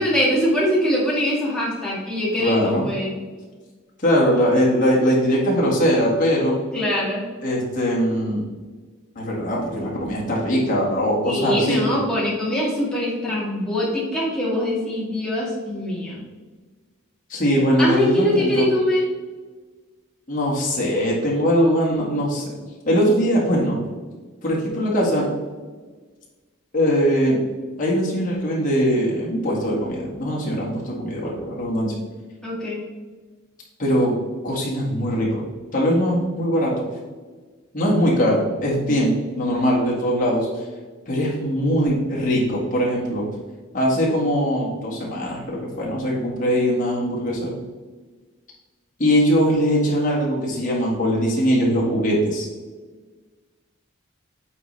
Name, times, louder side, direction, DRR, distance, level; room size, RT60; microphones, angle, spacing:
voice 1, 0.0-3.1 6.7-7.2 11.2-16.2 17.8-19.1 32.4-32.8 38.9-39.3, left 1 dB, 5° left, -6 dB, 1.8 m, -23 dB
voice 2, 2.4-2.9 4.0-6.6 7.4-8.5 9.2-12.0 17.3-18.7 20.3-22.6 22.9-23.8 24.4-25.3 26.7-27.4 27.8-31.9 33.8-34.1 34.4-35.4 35.7-36.9 37.7-40.5 41.1-43.2 43.7-47.5 49.0-52.5, equal, 40° left, -4 dB, 1.8 m, -21 dB
8.4 x 3.9 x 3.3 m, 1.4 s
head